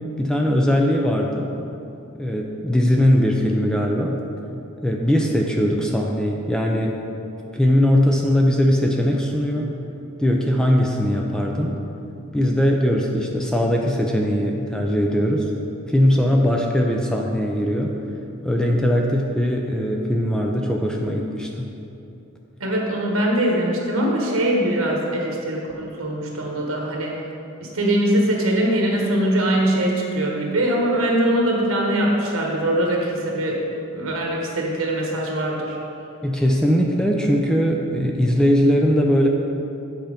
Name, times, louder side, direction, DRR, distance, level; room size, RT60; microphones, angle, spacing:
voice 1, 0.2-1.5 2.2-4.2 4.8-7.0 7.5-9.7 10.2-11.8 12.3-15.5 15.9-18.0 18.4-21.7 36.2-39.3, equal, 5° left, 0 dB, 0.4 m, -20 dB
voice 2, 22.6-27.1 27.6-33.6 33.9-35.8, right 1 dB, 80° right, -1 dB, 1.1 m, -22 dB
8.2 x 4.4 x 5.0 m, 2.8 s
head